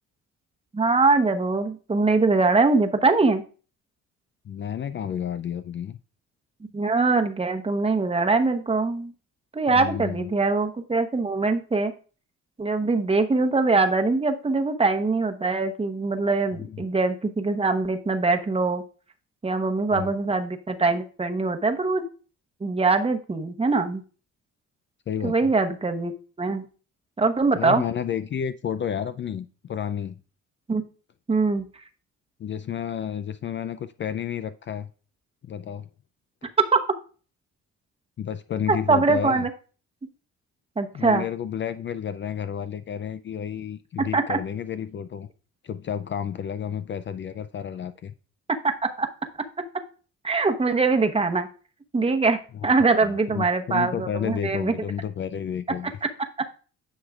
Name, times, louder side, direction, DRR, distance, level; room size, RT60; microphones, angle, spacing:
voice 1, 0.7-3.4 6.7-9.1 9.5-11.9 12.6-18.8 19.4-22.0 22.6-24.0 25.2-26.1 26.4-26.7 27.2-27.8 30.7-30.8 31.3-31.6 36.6-36.8 38.7-39.5 40.8-41.2 44.0-44.4 48.6-49.1 50.2-51.5 51.9-54.7 56.4-56.5, right 3 dB, 20° right, 0.9 m, -22 dB
voice 2, 4.5-6.0 9.7-10.3 16.5-16.8 19.9-20.1 25.1-25.5 27.5-30.2 32.4-34.9 35.4-35.9 38.2-39.5 40.9-45.3 45.6-48.1 53.0-55.9, left 8 dB, 40° left, 0.4 m, -31 dB
9.7 x 6.3 x 2.4 m
cardioid pair, 90°, 30 cm